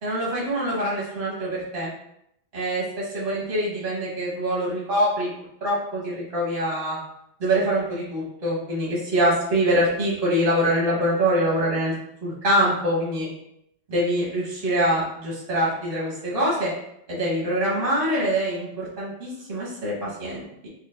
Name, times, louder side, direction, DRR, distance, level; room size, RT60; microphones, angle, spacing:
voice 1, 0.0-1.9 2.5-5.3 5.6-7.0 7.4-11.9 12.2-13.3 13.9-16.7 17.1-20.7, right 1 dB, 60° right, -7 dB, 1.6 m, -24 dB
6.2 x 2.5 x 2.2 m, 0.77 s
omnidirectional pair, 1.2 m